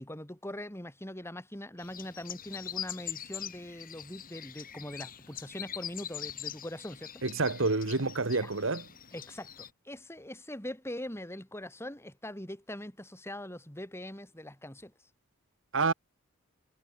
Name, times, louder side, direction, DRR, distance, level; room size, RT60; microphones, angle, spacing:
voice 1, 0.0-7.1 8.4-8.5 9.1-14.9, left 1 dB, 10° left, 4.7 m, -42 dB
sound 1, 1.8-9.7, left 10 dB, 40° left, 5.5 m, -43 dB
voice 2, 7.2-8.9 15.7-15.9, right 3 dB, 60° right, 1.5 m, -28 dB
head